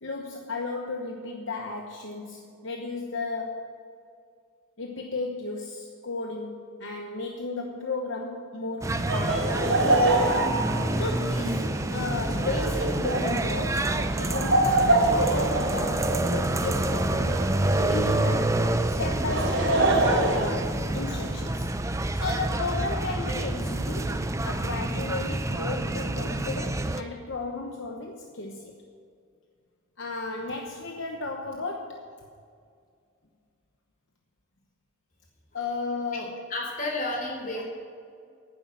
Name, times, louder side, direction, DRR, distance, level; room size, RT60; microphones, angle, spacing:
voice 1, 0.0-3.7 4.8-9.6 10.9-17.4 17.9-18.6 18.9-21.7 22.1-28.8 30.0-32.1 35.5-36.4 37.5-37.6, left 3 dB, 60° left, 2 dB, 1.0 m, -34 dB
sound 1, 8.8-27.0, right 1 dB, 15° right, 0.5 m, -28 dB
Laughter, 9.1-18.1 19.0-21.3, right 2 dB, 65° right, 3.3 m, -26 dB
voice 2, 36.5-37.6, left 2 dB, 40° left, -1 dB, 3.7 m, -31 dB
11.0 x 10.0 x 7.3 m, 2.3 s
head